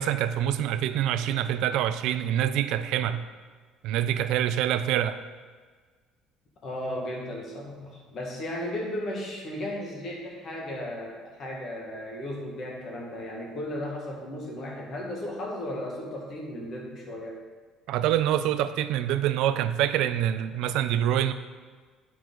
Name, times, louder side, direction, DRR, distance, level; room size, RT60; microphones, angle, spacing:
voice 1, 0.0-3.2 3.8-5.2 17.9-21.3, right 11 dB, 60° right, 12 dB, 0.4 m, -26 dB
voice 2, 6.6-17.4, left 1 dB, 30° left, -1 dB, 1.5 m, -35 dB
11.5 x 4.6 x 3.8 m, 1.5 s
cardioid pair, 175°, 0 cm